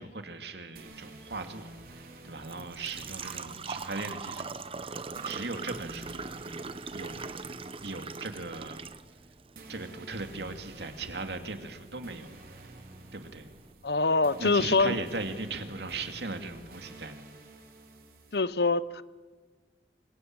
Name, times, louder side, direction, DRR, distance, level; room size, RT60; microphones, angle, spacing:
voice 1, 0.0-4.9 5.2-6.2 6.9-7.3 7.8-8.9 9.7-12.7 13.1-13.5 14.4-17.2, right 3 dB, 75° right, 2.6 m, -38 dB
sound 1, 0.8-18.4, right 2 dB, 55° right, 4.5 m, -50 dB
Engine / Trickle dribble / Fill (with liquid), 1.7-13.7, right 4 dB, 30° right, 1.0 m, -42 dB
voice 2, 13.8-15.0 18.3-19.0, left 3 dB, 65° left, 0.9 m, -25 dB
25.5 x 23.0 x 8.9 m
head